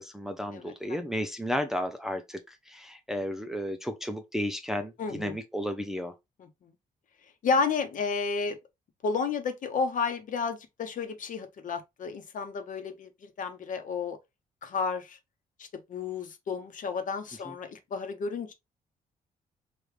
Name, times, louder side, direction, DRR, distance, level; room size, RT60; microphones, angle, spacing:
voice 1, 0.0-6.1 17.5-17.6, equal, 5° right, 0.5 m, -33 dB
voice 2, 0.5-1.0 5.0-5.4 6.4-6.7 7.4-8.6 9.0-14.2 14.6-15.2 15.6-18.5, left 5 dB, 60° left, 1.0 m, -32 dB
4.8 x 2.5 x 3.2 m
cardioid pair, 120°, 15 cm